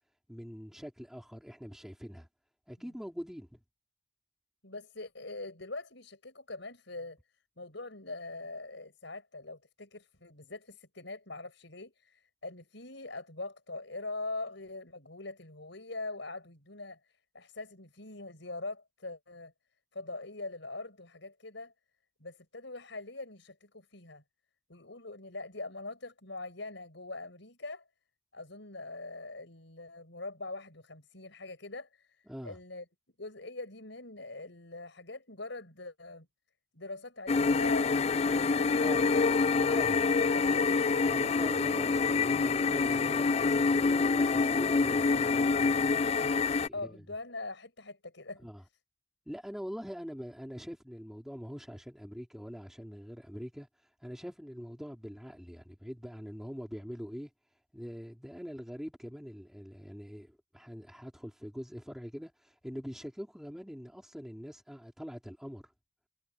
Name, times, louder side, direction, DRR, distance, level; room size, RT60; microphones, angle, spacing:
voice 1, 0.3-2.3 2.7-3.6 32.3-32.6 38.8-39.1 39.6-40.0 41.1-46.0 46.6-47.0 48.4-48.6 49.3-57.3 57.7-65.7, equal, ahead, 3.9 m, -43 dB
voice 2, 4.6-7.2 7.6-17.0 17.3-19.5 19.9-21.7 22.2-24.2 24.7-27.8 28.3-32.8 33.2-36.3 36.7-39.3 39.7-40.9 46.7-48.5, left 2 dB, 60° left, 7.9 m, -43 dB
sound 1, 37.3-46.7, left 4 dB, 30° left, 0.3 m, -26 dB
head